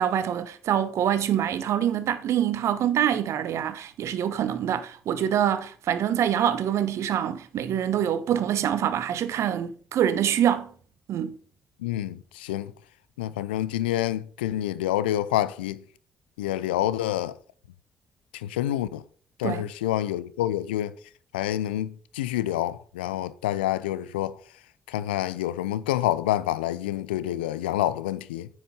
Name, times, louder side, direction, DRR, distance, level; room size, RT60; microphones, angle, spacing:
voice 1, 0.0-10.7 11.1-11.4 19.4-19.7, right 10 dB, 65° right, 1.0 m, -25 dB
voice 2, 11.8-12.7 13.2-15.8 16.4-17.4 18.3-19.0 19.4-20.9 21.3-24.3 24.9-28.5, left 13 dB, 85° left, 0.5 m, -27 dB
9.6 x 6.4 x 5.6 m
hypercardioid pair, 45°, 5 cm